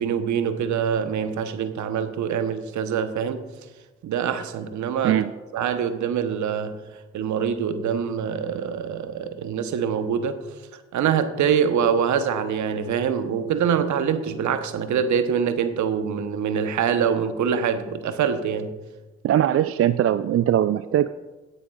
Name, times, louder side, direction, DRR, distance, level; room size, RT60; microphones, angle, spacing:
voice 1, 0.0-3.4 4.0-5.2 5.5-6.8 7.1-10.4 10.9-18.7, right 7 dB, 65° right, 10 dB, 1.0 m, -24 dB
voice 2, 19.2-21.1, right 11 dB, 45° right, 13 dB, 0.4 m, -20 dB
17.0 x 9.9 x 2.4 m, 1.2 s
hypercardioid pair, 40°, 32 cm